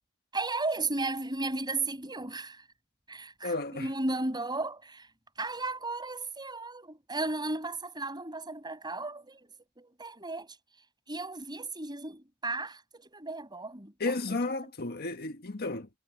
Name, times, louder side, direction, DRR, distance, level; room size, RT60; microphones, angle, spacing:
voice 1, 0.3-2.6 3.1-5.1 5.4-10.6 11.1-13.9, right 2 dB, 20° right, 7.7 m, -35 dB
voice 2, 3.4-3.9 14.0-15.9, left 2 dB, 45° left, 1.5 m, -33 dB
head